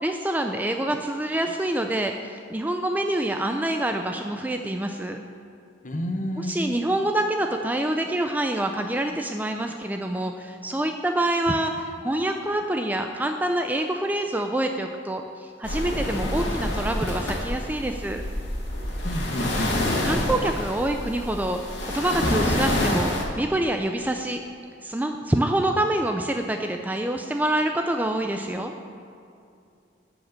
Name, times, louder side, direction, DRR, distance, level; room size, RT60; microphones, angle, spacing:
voice 1, 0.0-5.2 6.4-18.2 20.0-24.4 24.8-28.7, right 1 dB, 10° right, 5 dB, 0.3 m, -26 dB
voice 2, 5.8-6.6 19.0-19.8, equal, 40° left, 6 dB, 0.8 m, -29 dB
sound 1, 15.6-23.2, left 1 dB, 70° left, 2.0 m, -27 dB
11.0 x 5.0 x 7.6 m, 2.5 s
head